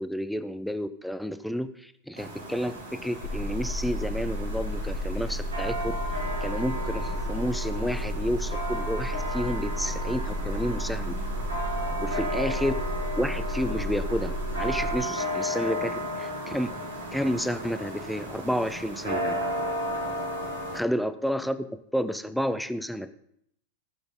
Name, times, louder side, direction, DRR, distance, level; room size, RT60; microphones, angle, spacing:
voice 1, 0.0-5.9 6.4-11.1 12.0-12.7 13.2-16.7 17.1-19.4 20.7-21.7 21.9-23.1, equal, ahead, 11 dB, 0.7 m, -30 dB
sound 1, 2.2-20.8, equal, 80° right, 3.1 m, -34 dB
sound 2, 3.2-15.0, equal, 65° left, 4.5 m, -32 dB
18.0 x 7.0 x 3.8 m, 0.74 s
figure-of-eight pair, 90°, 0 cm